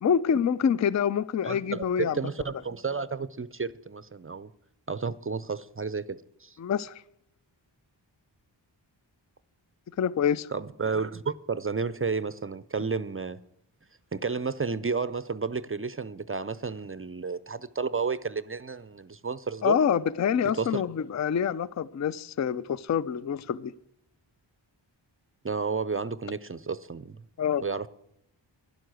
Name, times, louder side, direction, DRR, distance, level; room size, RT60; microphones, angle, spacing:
voice 1, 0.0-2.2 6.6-7.0 10.0-10.5 19.6-23.7 27.4-27.6, left 7 dB, 40° left, 0.4 m, -26 dB
voice 2, 1.4-4.5 4.9-6.6 10.5-13.4 14.1-19.8 20.6-20.8 25.4-27.2 27.6-27.9, right 4 dB, 30° right, 0.5 m, -32 dB
11.5 x 11.0 x 6.3 m
wide cardioid pair, 60°, 45 cm